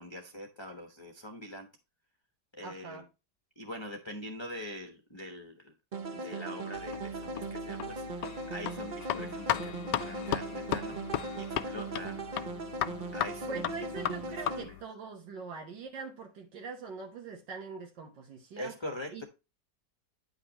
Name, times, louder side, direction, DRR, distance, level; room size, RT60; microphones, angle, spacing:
voice 1, 0.0-1.7 2.5-3.0 3.6-5.7 6.1-11.0 11.3-12.2 13.1-13.6 14.0-14.1 14.5-14.8 18.6-19.2, left 1 dB, 20° left, 0.9 m, -43 dB
voice 2, 2.6-3.0 13.1-18.7 19.1-19.3, right 4 dB, 80° right, 1.9 m, -43 dB
sound 1, 5.9-14.6, right 3 dB, 50° right, 0.5 m, -39 dB
sound 2, 6.7-14.8, left 11 dB, 75° left, 1.2 m, -36 dB
9.6 x 5.8 x 2.9 m
omnidirectional pair, 1.9 m